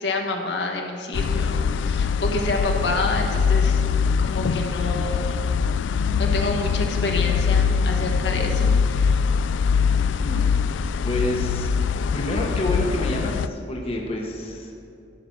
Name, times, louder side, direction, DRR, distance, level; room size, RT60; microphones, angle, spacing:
voice 1, 0.0-3.8 4.2-5.5 6.2-9.2, left 2 dB, 65° left, 1 dB, 1.4 m, -28 dB
sound 1, 1.1-13.5, left 6 dB, 80° left, 0.3 m, -22 dB
voice 2, 9.9-11.7 12.1-14.7, left 1 dB, 30° left, 0 dB, 1.1 m, -29 dB
14.0 x 5.8 x 6.0 m, 2.6 s
head